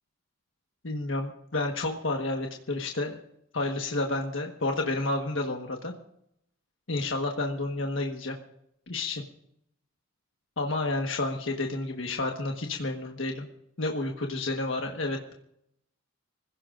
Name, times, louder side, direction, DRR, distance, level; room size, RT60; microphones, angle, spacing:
voice 1, 0.8-3.2 3.5-5.9 6.9-8.4 8.9-9.2 10.6-13.5 13.8-15.3, left 2 dB, 65° left, 2 dB, 1.5 m, -30 dB
25.5 x 16.0 x 2.6 m, 0.75 s
head